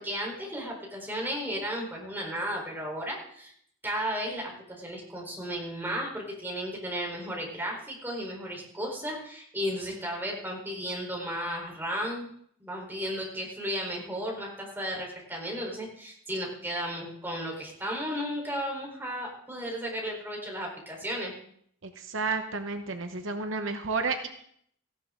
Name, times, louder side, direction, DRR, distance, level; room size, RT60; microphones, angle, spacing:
voice 1, 0.0-3.5 3.8-12.3 12.6-21.3, equal, 10° right, -1 dB, 4.0 m, -34 dB
voice 2, 21.8-24.3, right 4 dB, 65° right, 7 dB, 1.0 m, -31 dB
17.5 x 15.5 x 3.8 m, 0.66 s
head